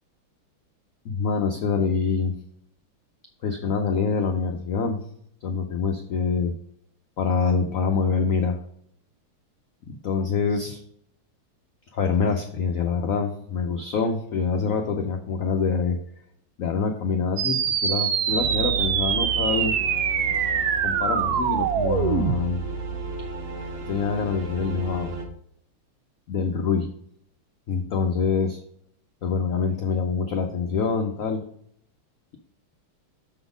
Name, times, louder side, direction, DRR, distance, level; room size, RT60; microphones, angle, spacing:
voice 1, 1.0-2.3 3.4-5.0 5.4-6.5 7.2-8.6 9.9-10.8 11.9-16.0 16.6-19.8 20.8-22.6 23.9-25.1 26.3-26.9 27.7-28.6 29.2-31.4, left 5 dB, 75° left, 4 dB, 0.7 m, -25 dB
sound 1, 17.4-22.4, right 8 dB, 70° right, 0.9 m, -24 dB
sound 2, 18.3-25.2, right 4 dB, 85° right, 2.1 m, -33 dB
7.0 x 4.0 x 5.0 m, 0.67 s
omnidirectional pair, 2.3 m